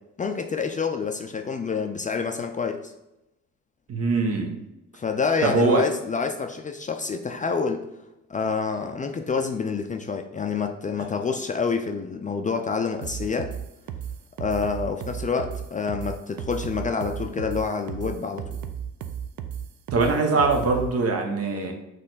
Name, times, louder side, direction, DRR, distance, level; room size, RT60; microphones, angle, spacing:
voice 1, 0.2-2.9 4.9-7.8 8.3-13.5 14.4-18.6, left 5 dB, 25° left, 5 dB, 0.4 m, -28 dB
voice 2, 3.9-4.6 5.4-5.8 19.9-21.7, right 3 dB, 50° right, 3 dB, 1.0 m, -22 dB
sound 1, 13.0-20.9, right 9 dB, 70° right, 0.5 m, -34 dB
4.1 x 3.2 x 4.0 m, 0.91 s
cardioid pair, 90°, 30 cm